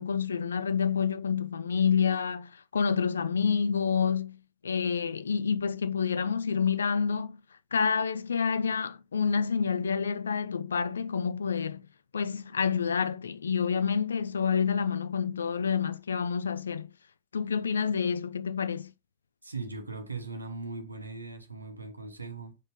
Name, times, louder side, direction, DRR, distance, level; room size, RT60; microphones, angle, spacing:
voice 1, 0.0-7.4 7.7-11.8 12.1-16.9 17.3-18.9, left 6 dB, 70° left, 0.3 m, -28 dB
voice 2, 19.4-22.6, right 3 dB, 80° right, 0.8 m, -39 dB
5.0 x 2.2 x 4.9 m
figure-of-eight pair, 90°, 0 cm